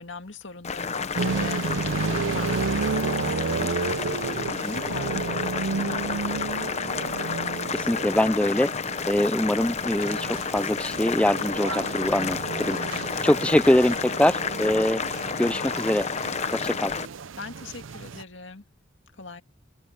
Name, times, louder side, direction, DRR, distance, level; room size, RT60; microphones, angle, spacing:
voice 1, 0.0-6.8 17.4-18.6 19.2-19.4, left 3 dB, 70° left, 2.1 m, -41 dB
Boiling, 0.6-17.1, left 5 dB, 35° left, 0.8 m, -31 dB
sound 1, 1.2-18.2, right 4 dB, 90° right, 0.6 m, -32 dB
voice 2, 7.7-8.7 9.1-12.8 13.2-15.0 15.4-16.1 16.5-16.9, left 1 dB, 5° left, 0.4 m, -23 dB
open air
head